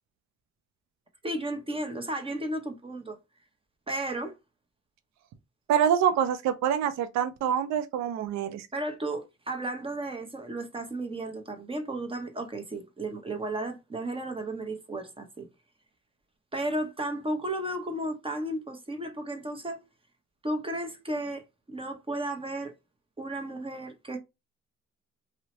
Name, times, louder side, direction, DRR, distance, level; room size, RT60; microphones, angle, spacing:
voice 1, 1.2-3.2 3.9-4.3 8.7-15.5 16.5-19.8 20.4-22.7 23.2-24.2, right 1 dB, 20° right, 0.7 m, -34 dB
voice 2, 5.7-8.7, right 9 dB, 65° right, 0.5 m, -26 dB
2.7 x 2.1 x 2.7 m
cardioid pair, 90°, 30 cm